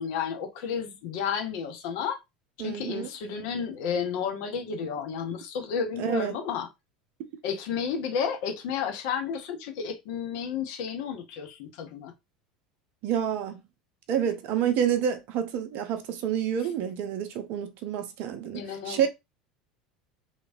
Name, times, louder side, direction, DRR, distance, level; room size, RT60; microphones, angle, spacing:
voice 1, 0.0-2.2 2.6-6.7 7.4-12.1 18.5-19.1, left 7 dB, 55° left, 0.7 m, -32 dB
voice 2, 2.6-3.1 6.0-6.4 13.0-13.6 14.1-19.1, right 9 dB, 50° right, 0.6 m, -28 dB
3.0 x 2.8 x 2.5 m
figure-of-eight pair, 75°, 4 cm